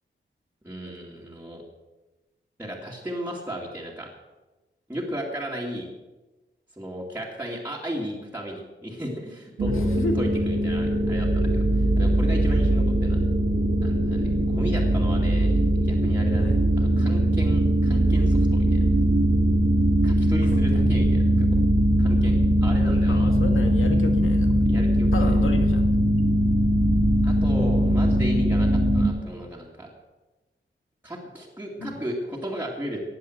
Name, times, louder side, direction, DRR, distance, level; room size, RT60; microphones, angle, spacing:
voice 1, 0.6-1.6 2.6-4.1 4.9-5.9 6.8-13.2 13.8-18.8 20.0-21.5 22.0-22.4 22.6-23.3 24.6-25.3 27.2-29.9 31.0-33.0, equal, 10° right, -4 dB, 2.4 m, -35 dB
sound 1, 9.6-29.0, right 1 dB, 80° right, 2.3 m, -21 dB
voice 2, 9.7-10.2 12.2-12.4 16.4-16.5 20.5-20.9 23.1-24.5 25.1-25.9 31.8-32.0, left 2 dB, 85° left, 5 dB, 2.1 m, -32 dB
15.5 x 10.5 x 7.9 m, 1.1 s
wide cardioid pair, 165°, 20 cm